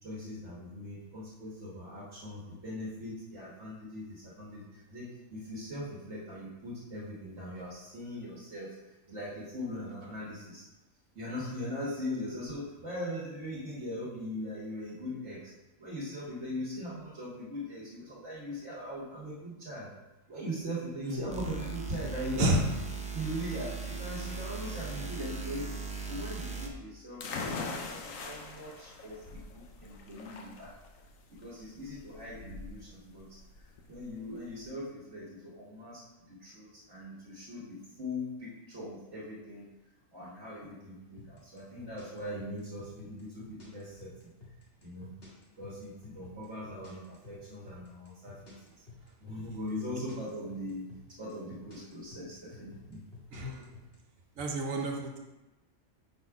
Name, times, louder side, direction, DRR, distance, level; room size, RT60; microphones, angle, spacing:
voice 1, 0.0-8.8 9.1-10.7 11.2-15.5 15.8-19.9 20.3-22.6 23.1-25.7 26.1-30.7 31.3-39.7 40.1-44.3 44.8-45.1 45.6-48.5 49.2-50.9 51.2-53.0, equal, 60° right, -6 dB, 1.7 m, -40 dB
sound 1, 21.3-26.7, right 5 dB, 10° right, 0.3 m, -38 dB
sound 2, 27.2-34.7, left 4 dB, 85° left, 1.2 m, -42 dB
sound 3, 41.2-54.0, left 4 dB, 45° left, 1.8 m, -51 dB
voice 2, 53.3-53.6 54.4-55.2, right 1 dB, 85° right, 1 dB, 1.3 m, -30 dB
6.0 x 4.2 x 4.8 m, 1.0 s
omnidirectional pair, 1.4 m